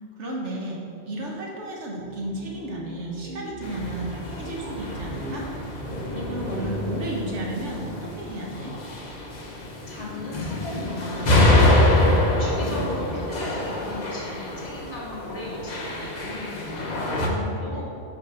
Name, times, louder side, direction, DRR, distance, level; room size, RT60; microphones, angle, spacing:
voice 1, 0.2-0.8 1.0-5.5 6.1-8.8 17.2-17.8, right 1 dB, 85° right, -2 dB, 1.5 m, -33 dB
sound 1, 2.0-9.2, right 1 dB, 60° right, 0.9 m, -40 dB
sound 2, 3.6-17.3, left 1 dB, 40° left, 0.9 m, -25 dB
voice 2, 9.9-17.2 17.6-17.8, left 2 dB, 65° left, -6 dB, 2.1 m, -37 dB
5.8 x 4.9 x 5.8 m, 2.9 s
omnidirectional pair, 1.2 m